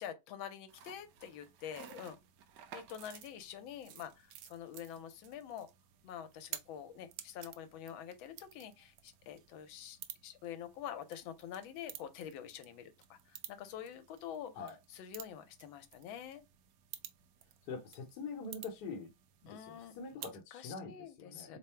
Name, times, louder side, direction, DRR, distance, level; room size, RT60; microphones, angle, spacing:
voice 1, 0.0-2.2 2.7-5.7 6.0-14.5 15.0-16.4 19.5-20.2 20.5-21.6, left 9 dB, 80° left, 1.4 m, -46 dB
sound 1, 0.7-20.4, right 11 dB, 75° right, 1.1 m, -53 dB
voice 2, 17.6-19.1 19.4-21.6, left 4 dB, 65° left, 1.1 m, -44 dB
3.6 x 2.0 x 4.3 m
omnidirectional pair, 2.2 m